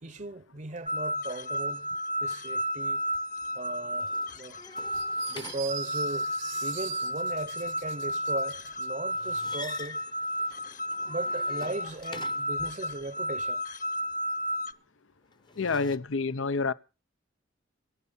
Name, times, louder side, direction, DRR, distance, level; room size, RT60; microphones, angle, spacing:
voice 1, 0.0-1.9 2.2-3.0 3.6-4.6 5.3-6.3 6.6-10.0 11.1-13.6, right 2 dB, 40° right, 0.7 m, -37 dB
sound 1, 0.9-14.7, equal, 45° left, 1.1 m, -32 dB
sound 2, 4.0-6.3 9.1-12.7 15.3-16.0, left 3 dB, 25° left, 0.8 m, -46 dB
sound 3, 4.9-8.9, right 14 dB, 65° right, 0.8 m, -43 dB
voice 2, 15.6-16.7, left 4 dB, 90° left, 0.8 m, -28 dB
24.5 x 8.2 x 5.6 m
head